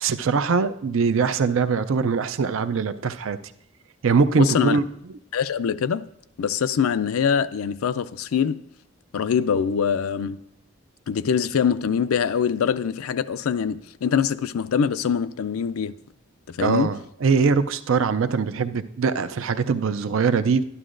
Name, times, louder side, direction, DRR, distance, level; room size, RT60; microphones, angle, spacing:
voice 1, 0.0-3.4 4.0-4.8 16.6-20.7, right 5 dB, 70° right, 0.4 m, -22 dB
voice 2, 4.3-4.8 5.3-6.0 6.4-8.6 9.1-10.4 11.1-15.9 16.6-16.9, left 7 dB, 90° left, 0.4 m, -23 dB
12.0 x 11.0 x 2.5 m
head